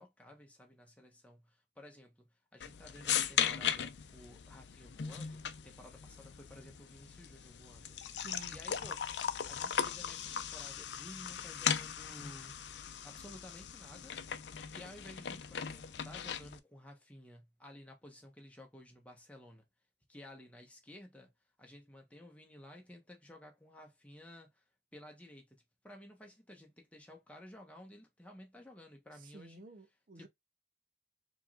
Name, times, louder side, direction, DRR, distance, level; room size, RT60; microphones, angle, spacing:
voice 1, 0.0-9.1 9.4-12.6 13.0-14.2 14.7-19.6 20.1-21.3 21.6-24.6 24.9-29.7 30.2-30.3, left 1 dB, 10° left, 1.1 m, -54 dB
sound 1, 2.6-16.6, left 8 dB, 80° left, 0.5 m, -38 dB
voice 2, 8.1-8.6 29.3-30.3, right 3 dB, 50° right, 0.7 m, -52 dB
4.6 x 3.1 x 2.4 m
head